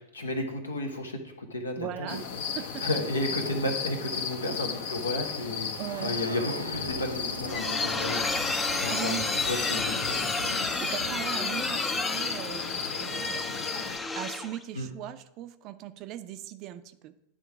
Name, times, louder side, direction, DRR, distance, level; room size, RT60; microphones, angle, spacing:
voice 1, 0.1-2.1 2.8-5.7 6.0-8.5 8.8-9.2 9.4-10.3 14.7-14.9, left 1 dB, 75° left, 4 dB, 1.2 m, -33 dB
voice 2, 1.8-2.3 2.6-2.8 5.8-6.2 8.9-9.3 10.8-13.7 14.1-17.2, right 12 dB, 40° right, 11 dB, 0.5 m, -39 dB
sound 1, 2.1-14.0, left 6 dB, 55° left, 0.9 m, -35 dB
sound 2, 5.8-11.3, right 1 dB, 85° right, 0.7 m, -40 dB
sound 3, 7.1-14.6, left 3 dB, 15° left, 0.5 m, -31 dB
10.0 x 3.8 x 5.9 m, 0.83 s
figure-of-eight pair, 90°, 0 cm